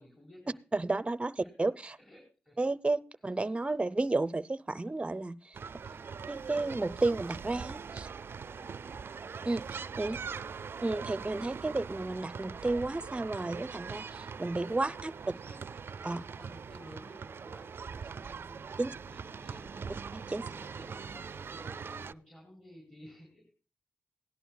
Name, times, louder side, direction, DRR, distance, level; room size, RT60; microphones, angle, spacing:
voice 1, 0.0-0.6 1.4-1.5 2.0-2.7 5.8-6.2 8.4-9.3 10.1-10.6 14.6-15.9 16.3-23.5, equal, 15° left, 2 dB, 4.3 m, -55 dB
voice 2, 0.7-2.0 2.6-5.6 6.3-8.1 9.4-10.2 10.8-15.1 16.0-16.3 18.8-18.9 20.1-20.4, right 2 dB, 25° right, 16 dB, 0.7 m, -32 dB
sound 1, 5.5-22.1, right 6 dB, 60° right, 0.4 m, -42 dB
17.0 x 11.0 x 2.3 m, 0.34 s
cardioid pair, 60°, 4 cm